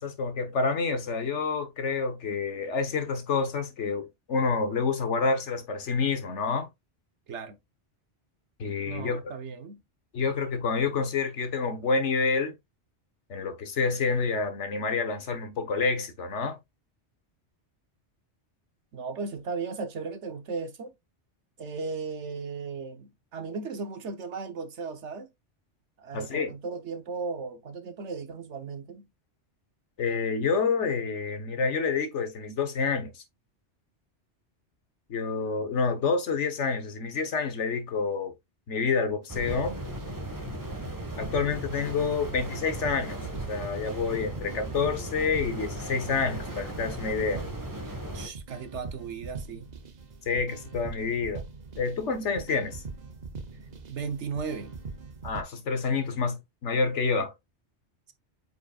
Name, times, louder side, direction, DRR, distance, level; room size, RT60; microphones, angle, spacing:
voice 1, 0.0-6.7 8.6-9.2 10.1-12.5 13.3-16.6 26.1-26.5 30.0-33.2 35.1-38.3 38.7-39.8 41.2-43.2 43.5-47.4 50.3-51.4 51.8-52.8 55.2-57.3, left 4 dB, 80° left, 1.5 m, -28 dB
voice 2, 7.3-7.6 8.9-9.8 18.9-20.9 21.6-25.3 26.0-29.1 48.1-49.7 53.9-54.7, right 4 dB, 75° right, 1.3 m, -36 dB
sound 1, 39.2-55.4, right 4 dB, 40° right, 0.8 m, -42 dB
sound 2, 39.3-48.3, right 1 dB, 15° right, 1.5 m, -37 dB
7.8 x 5.3 x 2.4 m
omnidirectional pair, 1.2 m